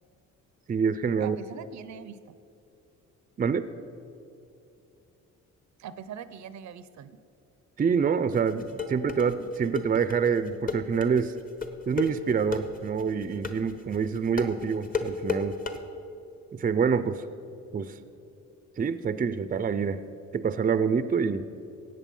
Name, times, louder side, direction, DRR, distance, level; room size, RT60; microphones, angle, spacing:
voice 1, 0.7-1.4 3.4-3.7 7.8-11.3 11.9-15.6 16.5-17.2 17.7-17.9 18.8-20.0 20.3-21.5, right 6 dB, 30° right, 13 dB, 0.5 m, -26 dB
voice 2, 1.2-2.4 5.8-7.2, right 8 dB, 65° right, 14 dB, 0.7 m, -42 dB
sound 1, 8.3-15.8, left 5 dB, 30° left, 1.1 m, -33 dB
17.5 x 8.2 x 5.4 m, 2.7 s
cardioid pair, 90°, 30 cm